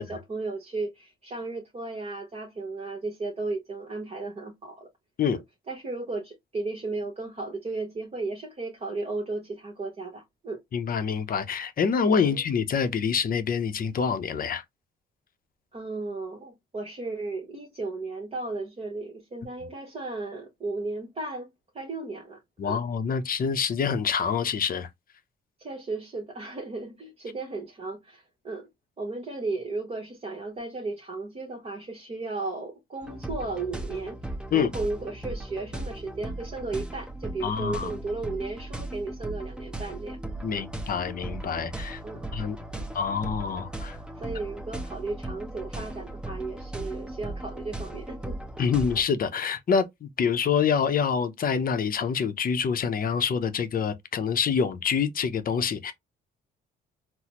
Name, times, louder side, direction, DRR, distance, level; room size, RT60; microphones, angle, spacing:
voice 1, 0.0-4.9 5.3-10.6 12.2-12.4 15.7-21.5 21.7-22.8 25.6-28.7 29.0-34.2 34.5-40.2 40.5-40.7 42.0-42.3 42.7-42.9 44.2-48.4, right 3 dB, 30° right, 1.0 m, -35 dB
voice 2, 10.7-14.6 22.6-24.9 34.5-34.7 37.4-38.0 40.4-42.0 42.3-42.6 42.9-44.0 48.6-55.9, left 6 dB, 45° left, 0.6 m, -26 dB
sound 1, 33.0-49.0, right 2 dB, 5° right, 0.7 m, -37 dB
4.0 x 2.1 x 2.9 m
cardioid pair, 90°, 20 cm